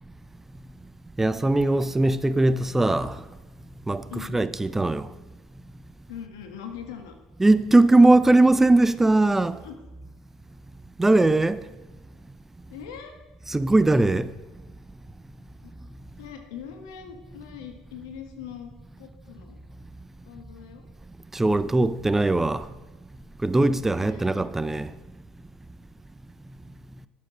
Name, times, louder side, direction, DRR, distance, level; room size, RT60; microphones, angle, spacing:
voice 1, 1.2-3.2 3.9-4.0 4.3-5.1 7.4-9.6 11.0-11.6 13.5-14.3 21.3-22.7 23.4-24.9, right 2 dB, 15° right, 0.5 m, -20 dB
voice 2, 4.1-4.5 6.1-7.2 9.6-9.8 12.7-13.1 15.6-15.8 16.2-18.7 19.0-19.6 20.2-20.8 23.8-24.3, left 8 dB, 85° left, 1.6 m, -41 dB
10.0 x 7.3 x 6.1 m
supercardioid pair, 80°, 2 cm